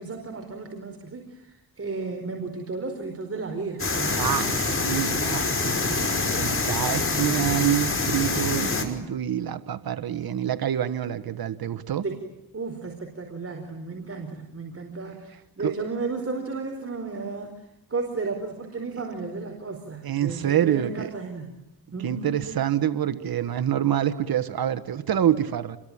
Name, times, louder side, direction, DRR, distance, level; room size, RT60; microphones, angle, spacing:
voice 1, 0.0-4.4 5.5-6.2 12.0-12.3 12.5-17.5 17.9-21.5 21.9-22.4, right 4 dB, 40° right, 3 dB, 4.8 m, -34 dB
sound 1, 3.8-8.8, left 3 dB, 35° left, 5.6 m, -25 dB
voice 2, 4.2-5.6 6.4-12.0 15.6-15.7 20.0-21.1 22.0-25.8, right 10 dB, 75° right, 12 dB, 1.4 m, -26 dB
28.5 x 22.5 x 8.9 m, 0.93 s
cardioid pair, 80°, 37 cm